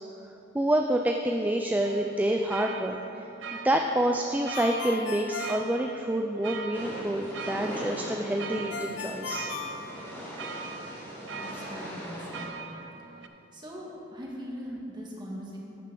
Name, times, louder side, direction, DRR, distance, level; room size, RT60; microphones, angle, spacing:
voice 1, 0.5-3.0 3.5-9.5, right 1 dB, 10° right, 3 dB, 0.3 m, -27 dB
sound 1, 1.8-13.3, right 5 dB, 70° right, 0.6 m, -41 dB
Ringtone, 4.5-6.5 8.7-10.6, left 6 dB, 70° left, 0.8 m, -37 dB
sound 2, 6.7-12.5, equal, 10° left, 1.7 m, -40 dB
voice 2, 11.2-12.7 13.5-15.6, equal, 25° right, -3 dB, 1.6 m, -41 dB
11.5 x 9.0 x 3.8 m, 3.0 s
head